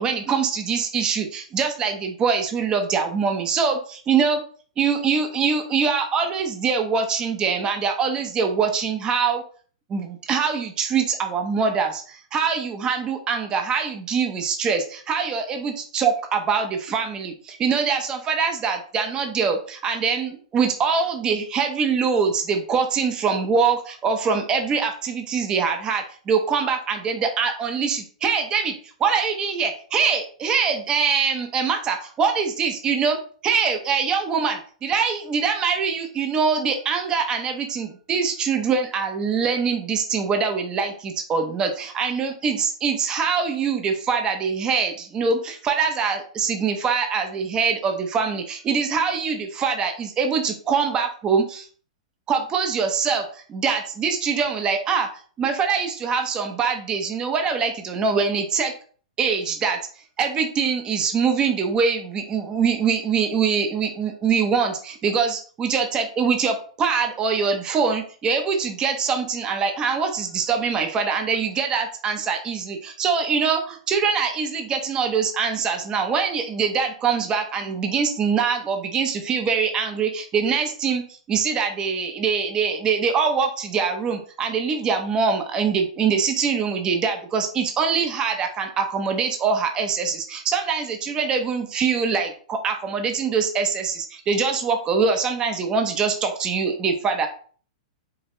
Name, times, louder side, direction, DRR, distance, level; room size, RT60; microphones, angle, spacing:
voice 1, 0.0-4.4 4.8-9.4 9.9-28.7 29.0-51.7 52.3-55.1 55.4-58.7 59.2-59.8 60.2-81.0 81.3-97.3, right 5 dB, 20° right, 5 dB, 0.7 m, -23 dB
4.7 x 2.9 x 3.2 m, 0.43 s
hypercardioid pair, 135°, 4 cm